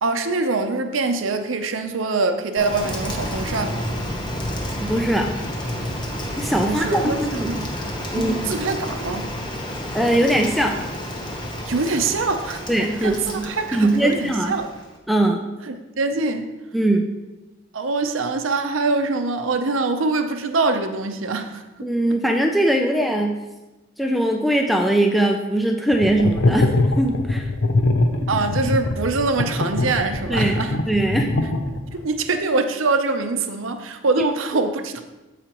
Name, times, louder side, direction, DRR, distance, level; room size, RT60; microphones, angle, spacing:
voice 1, 0.0-3.8 6.6-7.2 7.5-7.7 8.1-9.3 11.7-12.6 13.0-14.7 15.7-16.5 17.7-21.9 28.3-30.8 31.9-35.0, right 3 dB, 75° right, 7 dB, 0.7 m, -24 dB
Rain, 2.6-15.0, equal, 20° left, 1.0 m, -30 dB
voice 2, 4.8-5.3 6.4-7.5 8.1-8.5 9.9-10.7 12.7-14.5 15.1-15.5 16.7-17.1 21.8-23.4 24.0-27.5 30.3-31.3 34.5-34.6, right 1 dB, ahead, 2 dB, 0.4 m, -21 dB
sound 1, 25.9-32.0, left 2 dB, 80° left, 0.7 m, -22 dB
14.5 x 5.0 x 3.0 m, 1.1 s
head